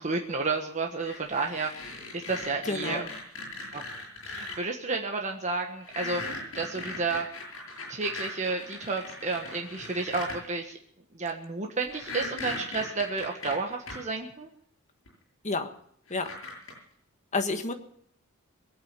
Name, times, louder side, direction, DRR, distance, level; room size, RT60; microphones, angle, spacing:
voice 1, 0.0-3.0 3.7-3.8 4.3-7.2 7.9-10.8 11.1-14.5, right 3 dB, 35° right, 2 dB, 1.4 m, -31 dB
sound 1, 1.0-4.6 5.8-10.4 11.9-13.9 15.1-15.2 16.1-16.7, left 3 dB, 65° left, 7.9 m, -39 dB
voice 2, 2.7-3.1 15.4-15.7 16.1-16.3 17.3-17.7, left 3 dB, 35° left, 6 dB, 1.5 m, -29 dB
22.5 x 8.9 x 6.7 m, 0.65 s
head